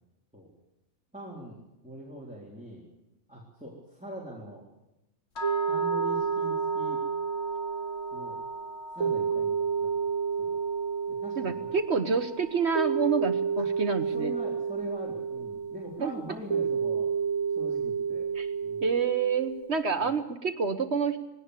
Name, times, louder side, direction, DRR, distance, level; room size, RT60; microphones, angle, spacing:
voice 1, 1.1-1.6 1.8-2.8 3.3-4.6 5.7-7.0 8.1-8.4 8.9-9.9 10.4-10.6 11.1-11.7 13.6-13.7 14.1-17.1 17.6-18.3 18.6-18.8 20.0-20.1, equal, 5° right, -4 dB, 3.9 m, -42 dB
sound 1, 5.4-15.4, right 1 dB, 55° left, 2.3 m, -40 dB
sound 2, 5.4-19.6, right 6 dB, 80° right, 2.0 m, -30 dB
voice 2, 11.4-14.3 16.0-16.1 18.3-18.5 18.8-21.2, right 5 dB, 55° right, 8 dB, 1.4 m, -28 dB
20.5 x 17.5 x 8.2 m, 0.95 s
omnidirectional pair, 1.4 m